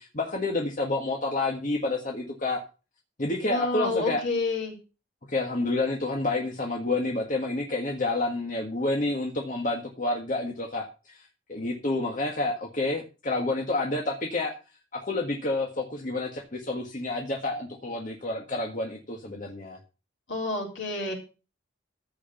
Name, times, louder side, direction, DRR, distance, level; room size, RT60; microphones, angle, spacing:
voice 1, 0.0-2.6 3.2-4.2 5.3-14.5 14.9-19.8, left 2 dB, 40° left, 1 dB, 1.7 m, -29 dB
voice 2, 3.4-4.7 20.3-21.1, left 3 dB, 65° left, 1 dB, 3.8 m, -29 dB
14.5 x 5.0 x 7.1 m, 0.33 s
head